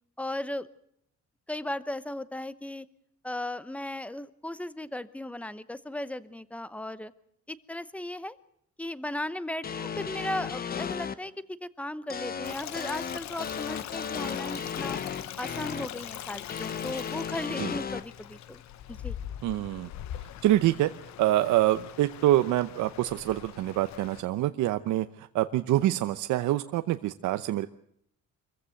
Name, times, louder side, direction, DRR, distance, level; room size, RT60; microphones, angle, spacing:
voice 1, 0.2-0.7 1.5-2.9 3.2-7.1 7.5-8.4 8.8-11.3 11.6-15.0 15.4-18.6 18.9-19.1, left 1 dB, 5° left, 15 dB, 0.8 m, -36 dB
sound 1, 9.6-11.1 12.1-15.9 16.5-18.0, left 7 dB, 30° left, 1.1 m, -34 dB
Stream, 12.4-24.2, left 11 dB, 60° left, 1.0 m, -42 dB
voice 2, 19.4-19.9 20.4-20.9 21.2-27.7, right 14 dB, 75° right, 9 dB, 0.9 m, -26 dB
25.0 x 15.5 x 7.7 m, 0.73 s
cardioid pair, 150°, 31 cm